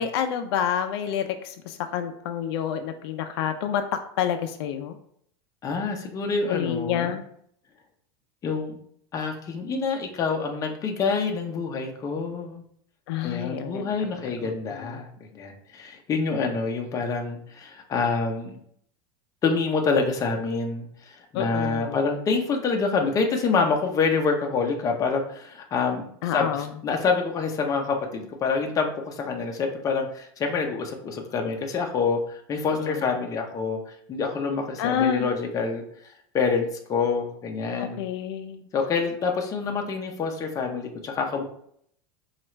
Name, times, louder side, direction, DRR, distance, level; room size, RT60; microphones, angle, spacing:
voice 1, 0.0-5.0 6.5-7.2 13.1-15.0 21.3-22.1 26.2-26.8 32.7-33.1 34.8-35.3 37.8-38.7, left 8 dB, 75° left, 7 dB, 0.4 m, -29 dB
voice 2, 5.6-7.1 8.4-8.8 9.1-12.6 13.2-18.6 19.4-26.0 26.3-26.5 26.8-35.8 36.3-38.0 38.7-41.4, left 4 dB, 25° left, 3 dB, 0.6 m, -27 dB
4.4 x 2.4 x 3.1 m, 0.66 s
supercardioid pair, 135°, 13 cm